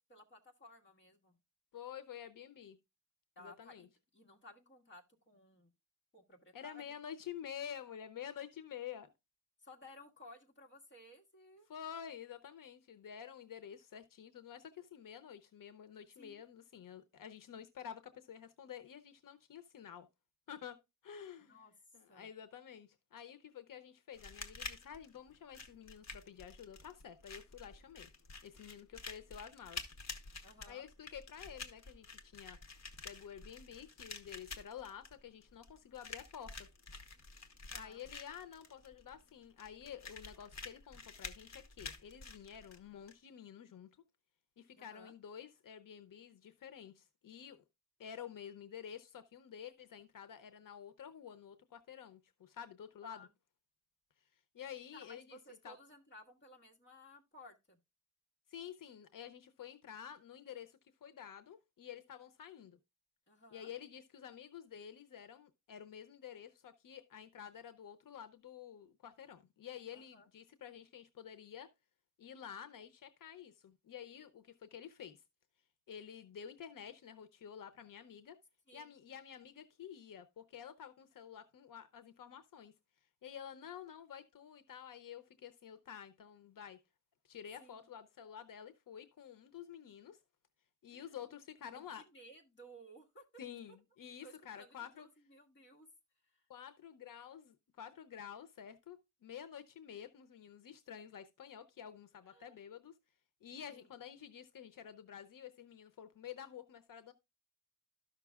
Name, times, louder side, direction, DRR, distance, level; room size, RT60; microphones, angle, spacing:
voice 1, 0.0-1.3 3.3-5.7 6.1-6.9 9.6-11.7 16.1-16.4 21.4-21.7 22.1-22.3 30.4-30.9 37.7-38.0 44.7-45.1 53.0-53.3 54.9-57.8 63.3-63.7 69.9-70.3 78.7-78.9 87.6-87.7 90.9-91.2 91.7-93.2 94.2-95.9 96.3-96.4 102.3-102.6 103.7-103.9, left 1 dB, 35° left, 1.6 m, -58 dB
voice 2, 1.7-2.8 3.4-3.9 6.5-9.1 11.7-20.1 20.5-20.8 21.0-21.6 21.9-28.1 28.4-29.8 30.7-32.6 33.0-36.7 37.7-43.9 44.6-47.6 48.0-53.3 54.5-55.4 55.6-55.8 58.5-62.8 63.5-71.7 72.2-75.2 75.9-78.4 78.7-82.7 83.2-86.8 87.2-90.2 90.8-92.0 93.4-95.1 96.5-102.9 103.4-107.1, left 8 dB, 85° left, 0.7 m, -50 dB
sound 1, 24.1-43.1, left 4 dB, 55° left, 1.1 m, -49 dB
13.0 x 6.0 x 2.3 m
wide cardioid pair, 140°, 32 cm